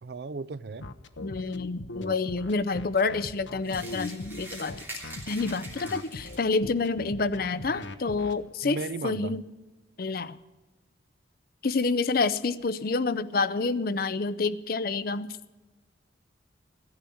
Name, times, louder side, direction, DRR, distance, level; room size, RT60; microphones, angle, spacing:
voice 1, 0.0-0.9 8.6-9.4, right 3 dB, 55° right, 0.4 m, -35 dB
sound 1, 0.8-8.3, left 2 dB, 80° left, 0.9 m, -39 dB
voice 2, 1.2-4.8 5.3-8.8 9.0-9.4 10.0-10.4 11.6-15.3, left 4 dB, 50° left, 0.6 m, -28 dB
sound 2, 3.6-6.6, right 1 dB, 10° right, 2.9 m, -43 dB
15.0 x 10.5 x 7.0 m
head